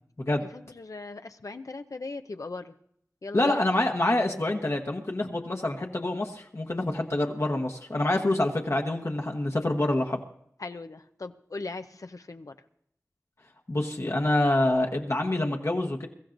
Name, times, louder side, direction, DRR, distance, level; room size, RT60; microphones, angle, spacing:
voice 1, 0.4-2.7 3.2-3.9 10.6-12.6, left 3 dB, 75° left, 8 dB, 0.7 m, -39 dB
voice 2, 3.3-10.2 13.7-16.1, left 1 dB, 50° left, 2 dB, 1.2 m, -26 dB
22.5 x 14.0 x 2.6 m, 0.68 s
wide cardioid pair, 60°, 6 cm